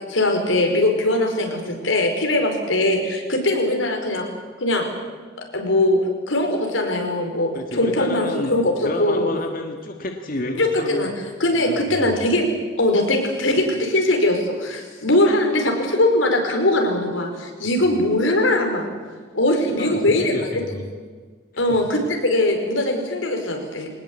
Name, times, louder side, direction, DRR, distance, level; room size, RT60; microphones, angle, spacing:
voice 1, 0.1-4.3 4.6-4.9 5.4-8.7 9.0-9.3 10.6-11.1 11.4-12.5 12.8-18.9 19.3-20.4 20.7-20.8 21.6-23.9, left 1 dB, 90° left, 3 dB, 5.0 m, -21 dB
voice 2, 7.5-8.6 8.8-11.1 11.5-12.2 19.6-20.8 21.6-21.8, left 2 dB, 45° left, 3 dB, 1.7 m, -30 dB
23.0 x 19.5 x 8.6 m, 1.5 s
head